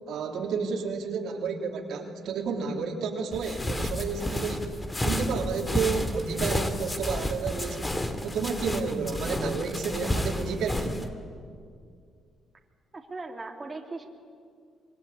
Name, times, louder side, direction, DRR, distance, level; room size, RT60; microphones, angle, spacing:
voice 1, 0.1-4.7 5.0-11.1, right 5 dB, 75° right, 2 dB, 3.2 m, -31 dB
sound 1, 3.3-11.1, left 1 dB, 15° left, 2.6 m, -31 dB
voice 2, 12.9-14.1, right 3 dB, 25° right, 1 dB, 3.2 m, -39 dB
26.0 x 23.0 x 9.9 m, 2.2 s
cardioid pair, 90°, 0 cm